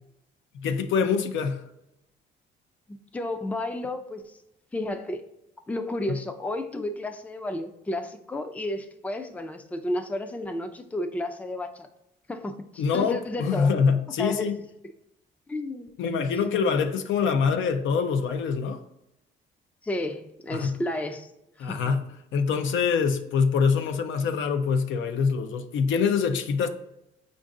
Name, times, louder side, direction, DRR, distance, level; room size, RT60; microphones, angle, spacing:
voice 1, 0.5-1.6 6.1-6.2 12.8-14.6 16.0-18.8 20.5-20.8 21.6-22.0 22.3-26.7, left 5 dB, 75° left, 0.5 m, -25 dB
voice 2, 2.9-4.4 4.7-5.2 5.7-11.9 12.3-13.7 14.2-14.5 14.8-14.9 15.5-15.9 19.8-21.3 21.6-21.9, left 1 dB, 5° left, 0.4 m, -32 dB
5.1 x 2.6 x 3.6 m
cardioid pair, 90°, 20 cm